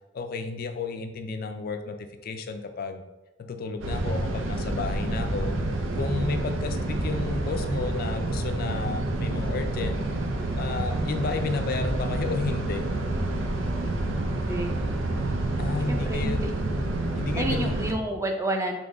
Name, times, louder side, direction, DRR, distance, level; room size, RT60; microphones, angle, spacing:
voice 1, 0.1-2.0 2.2-3.0 3.4-5.6 6.0-10.0 10.6-12.9 15.6-16.5 17.2-17.7, left 4 dB, 50° left, 7 dB, 0.3 m, -32 dB
sound 1, 3.8-17.9, right 2 dB, 90° right, 0.6 m, -28 dB
voice 2, 15.9-16.5 17.4-18.8, right 1 dB, 15° right, 3 dB, 0.5 m, -29 dB
3.8 x 3.1 x 3.5 m, 1.1 s
head